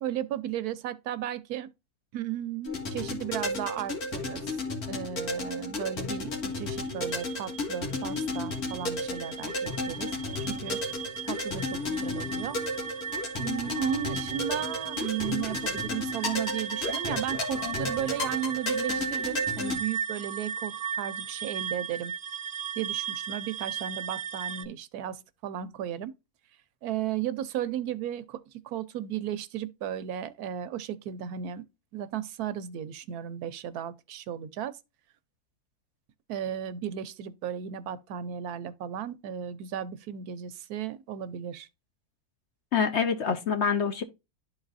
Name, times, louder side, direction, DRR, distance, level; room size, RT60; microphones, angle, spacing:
voice 1, 0.0-1.7 2.1-4.6 4.9-10.1 10.5-10.8 11.2-12.6 13.4-22.1 22.8-26.1 26.8-31.6 31.9-34.8 36.3-41.7, right 10 dB, 80° right, 1.2 m, -35 dB
sound 1, 2.7-19.8, left 2 dB, 80° left, 2.0 m, -33 dB
sound 2, 6.8-24.6, right 8 dB, 55° right, 0.6 m, -36 dB
voice 2, 42.7-44.0, left 6 dB, 55° left, 0.9 m, -26 dB
12.0 x 4.0 x 2.5 m
omnidirectional pair, 1.6 m